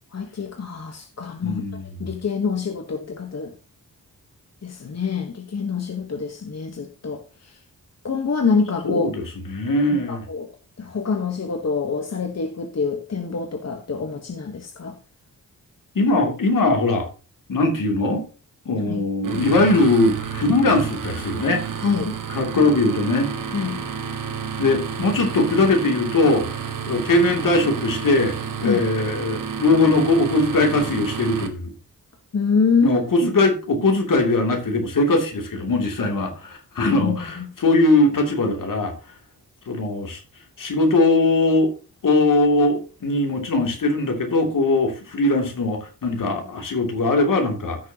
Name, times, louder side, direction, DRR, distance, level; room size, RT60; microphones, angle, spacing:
voice 1, 0.1-1.6 2.0-3.5 4.6-7.6 8.0-9.2 10.1-10.5 10.8-14.9 18.9-19.0 21.8-22.1 23.5-23.8 28.6-28.9 32.3-33.3 36.8-37.5, left 5 dB, 50° left, 1.3 m, -25 dB
voice 2, 1.4-1.8 8.8-9.1 9.5-10.2 15.9-17.1 17.5-18.2 18.6-21.6 22.3-23.3 24.6-26.5 26.9-28.4 28.6-31.7 32.8-38.9 39.7-40.2 40.6-41.7 42.0-47.8, left 2 dB, 65° left, 2.9 m, -20 dB
sound 1, 19.2-31.5, right 7 dB, 70° right, 1.7 m, -30 dB
15.0 x 6.6 x 2.9 m
cardioid pair, 75°, 34 cm